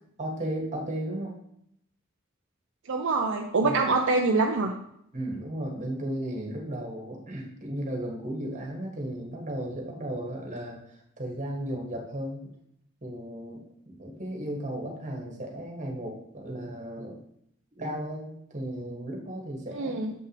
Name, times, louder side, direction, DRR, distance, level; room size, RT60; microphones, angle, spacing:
voice 1, 0.2-1.3 3.6-3.8 5.1-12.5 13.0-17.2 17.8-20.0, right 1 dB, 35° right, 0 dB, 1.6 m, -35 dB
voice 2, 2.9-4.7 19.7-20.1, right 3 dB, 65° right, 2 dB, 0.6 m, -25 dB
7.3 x 5.7 x 3.3 m, 0.73 s
head